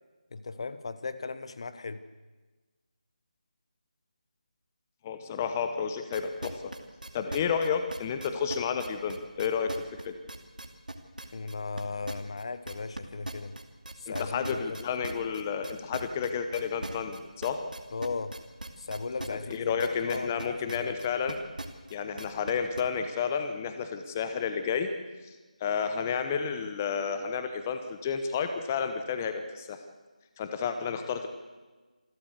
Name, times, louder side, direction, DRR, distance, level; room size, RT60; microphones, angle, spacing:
voice 1, 0.3-2.0 11.3-13.5 14.0-14.8 17.9-18.4 18.8-19.7 20.0-20.9, left 4 dB, 40° left, 13 dB, 1.1 m, -37 dB
voice 2, 5.0-6.7 7.1-10.1 14.1-17.6 19.5-21.4 21.9-24.9 25.6-29.8 30.4-31.3, left 6 dB, 15° left, 8 dB, 1.0 m, -31 dB
sound 1, 6.1-13.0 13.2-22.8, right 2 dB, 90° right, 2.7 m, -40 dB
27.0 x 12.5 x 8.1 m, 1.3 s
figure-of-eight pair, 165°, 4 cm